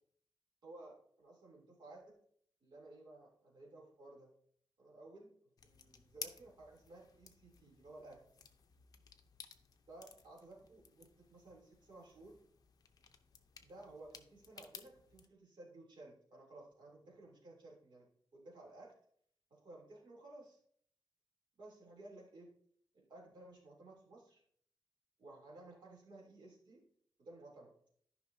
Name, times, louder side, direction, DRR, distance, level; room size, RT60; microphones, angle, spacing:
voice 1, 0.6-2.2 2.6-4.3 4.8-5.3 5.6-8.2 9.9-12.4 13.6-18.9 19.5-20.6 21.6-22.5 22.9-24.4 25.2-26.8 27.2-27.7, right 2 dB, 60° right, -3 dB, 3.1 m, -56 dB
sound 1, 5.6-15.3, left 6 dB, 45° left, 0.7 m, -56 dB
13.5 x 5.6 x 2.7 m, 0.62 s
wide cardioid pair, 160°, 9 cm